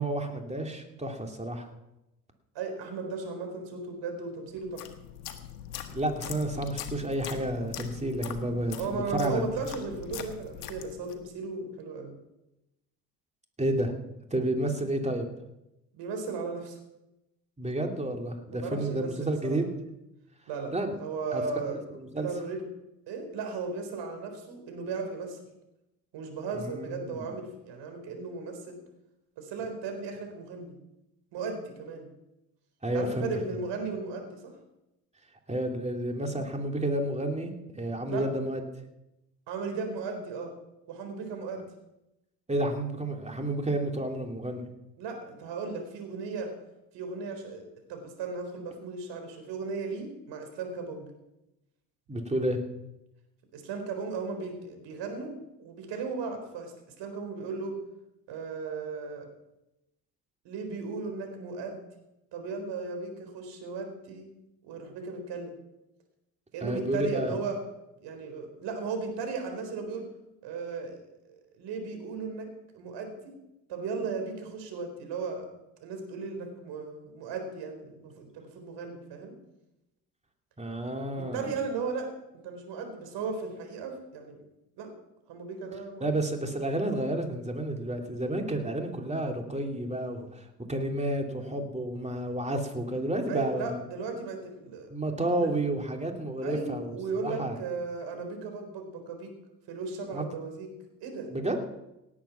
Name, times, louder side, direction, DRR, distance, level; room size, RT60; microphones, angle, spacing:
voice 1, 0.0-1.7 5.9-9.4 13.6-13.9 14.3-15.2 17.6-19.7 20.7-20.9 21.3-21.4 22.0-22.3 26.6-27.3 32.8-33.3 35.5-38.6 42.5-44.7 52.1-52.6 66.6-67.3 80.6-81.5 86.0-93.8 94.9-96.9 97.2-97.6 100.1-100.2 101.3-101.6, right 1 dB, 15° right, 3 dB, 2.9 m, -30 dB
voice 2, 2.5-4.9 8.8-12.1 15.9-16.8 18.5-19.6 20.5-20.7 21.0-21.8 22.2-22.7 23.1-25.4 26.1-28.8 29.4-30.8 31.3-32.1 32.9-34.5 38.1-38.2 39.5-40.5 40.9-41.6 45.0-46.5 46.9-47.6 47.9-51.1 53.5-57.8 58.3-59.3 60.4-61.8 62.3-64.3 64.6-65.5 66.5-67.6 68.0-70.1 70.4-73.2 73.7-75.5 75.8-79.3 81.1-82.1 82.4-84.4 84.8-84.9 85.3-86.1 93.3-94.9 95.4-95.5 96.4-99.3 99.7-100.7 101.0-101.3, right 4 dB, 60° right, 5 dB, 4.2 m, -36 dB
sound 1, 4.6-11.3, left 10 dB, 80° left, 1.4 m, -41 dB
18.0 x 8.6 x 5.9 m, 0.91 s
hypercardioid pair, 65°, 47 cm